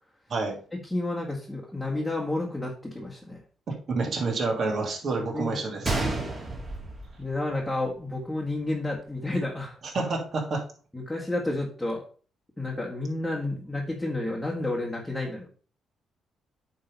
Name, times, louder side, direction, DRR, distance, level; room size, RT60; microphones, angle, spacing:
voice 1, 0.7-3.4 5.3-5.7 7.2-9.8 10.9-12.0 12.6-15.5, left 2 dB, 10° left, -3 dB, 1.7 m, -31 dB
voice 2, 3.7-5.9 9.9-10.6, right 3 dB, 45° right, 0 dB, 2.7 m, -28 dB
Gunshot gunfire, 5.8-7.9 8.2-8.3 8.9-9.1, right 2 dB, 25° right, 2.4 m, -31 dB
8.7 x 3.8 x 5.3 m, 0.41 s
cardioid pair, 90°, 0 cm